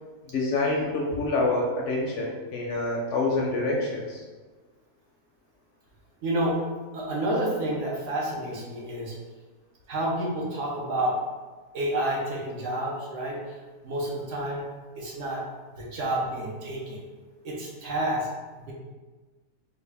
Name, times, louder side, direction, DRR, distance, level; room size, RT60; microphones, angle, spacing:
voice 1, 0.3-4.2, left 2 dB, 65° left, -2 dB, 0.8 m, -27 dB
voice 2, 6.2-6.6 6.9-9.1 9.9-11.1 11.7-13.6 13.8-14.6 15.0-15.4 15.7-17.0 17.4-18.3 18.6-18.7, right 1 dB, 65° right, -3 dB, 1.0 m, -29 dB
3.2 x 2.3 x 3.3 m, 1.3 s
omnidirectional pair, 1.5 m